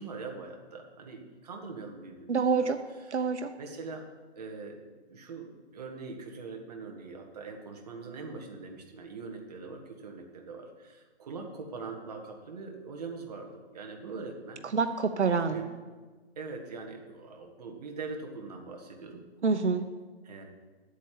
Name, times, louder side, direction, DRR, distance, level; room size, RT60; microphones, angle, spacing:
voice 1, 0.0-2.7 3.1-3.2 3.6-4.0 4.4-4.8 5.1-10.7 11.2-13.5 13.7-14.6 15.3-15.7 16.4-19.2 20.3-20.4, right 4 dB, 35° right, 2 dB, 1.8 m, -42 dB
voice 2, 2.3-2.8 3.1-3.5 14.6-15.6 19.4-19.9, right 5 dB, 90° right, 9 dB, 0.9 m, -27 dB
8.6 x 7.7 x 8.4 m, 1.4 s
hypercardioid pair, 165°, 33 cm